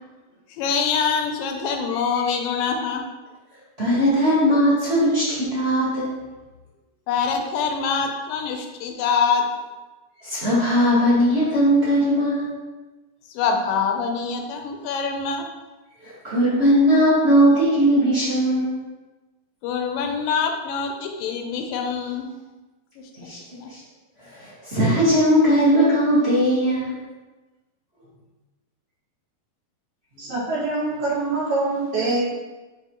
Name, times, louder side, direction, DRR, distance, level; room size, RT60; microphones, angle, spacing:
voice 1, 0.6-3.0 7.1-9.5 13.3-15.5 19.6-22.3 23.6-23.7, left 6 dB, 80° left, 4 dB, 2.3 m, -24 dB
voice 2, 3.8-6.1 10.2-12.5 16.0-18.7 23.2-23.4 23.7-23.8 24.3-26.9, equal, 30° right, -10 dB, 1.1 m, -19 dB
voice 3, 30.2-32.2, right 3 dB, 70° right, -8 dB, 3.3 m, -24 dB
9.2 x 3.5 x 3.0 m, 1.2 s
omnidirectional pair, 4.0 m